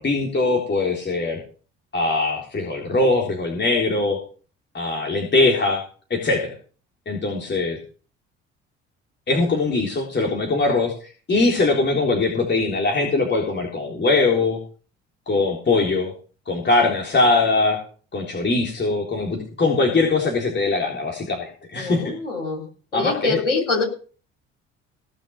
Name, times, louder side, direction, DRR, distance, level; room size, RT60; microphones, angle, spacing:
voice 1, 0.0-1.4 1.9-4.2 4.7-5.8 6.1-6.5 7.1-7.8 9.3-14.6 15.3-16.1 16.5-17.8 18.1-22.1 22.9-23.4, left 3 dB, 30° left, 0 dB, 3.8 m, -21 dB
voice 2, 21.8-22.7 22.9-23.8, left 3 dB, 85° left, -1 dB, 3.7 m, -24 dB
17.5 x 6.3 x 6.2 m, 0.40 s
figure-of-eight pair, 50°, 35 cm